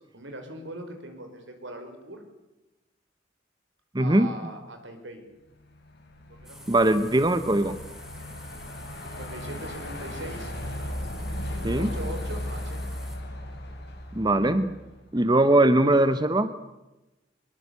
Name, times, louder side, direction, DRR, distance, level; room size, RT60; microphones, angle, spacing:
voice 1, 0.1-2.2 4.0-5.2 6.3-6.9 9.0-10.5 11.8-12.8, right 1 dB, 75° right, 6 dB, 5.2 m, -40 dB
voice 2, 3.9-4.3 6.7-7.8 11.6-11.9 14.1-14.7 15.1-16.5, right 1 dB, 20° right, 11 dB, 0.9 m, -21 dB
Truck, 5.7-15.1, left 1 dB, 60° left, 6.7 m, -36 dB
sound 1, 6.4-13.2, equal, 5° right, 3.8 m, -49 dB
24.5 x 21.5 x 8.3 m, 1.0 s
head